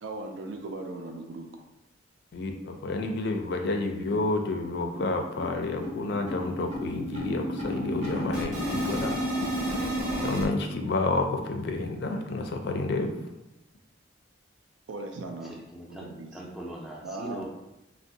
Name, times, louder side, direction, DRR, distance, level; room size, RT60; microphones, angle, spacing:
voice 1, 0.0-1.6 14.9-15.6 15.9-16.4 17.0-17.5, right 2 dB, 80° right, 4 dB, 0.4 m, -38 dB
voice 2, 2.3-9.1 10.2-13.1, left 2 dB, 60° left, 4 dB, 0.4 m, -30 dB
sound 1, 3.2-3.3 3.6-3.7 4.1-4.2 4.5-10.5, equal, 40° right, 0.7 m, -32 dB
voice 3, 15.5-17.5, right 1 dB, ahead, -3 dB, 0.5 m, -40 dB
2.6 x 2.0 x 3.9 m, 0.94 s
head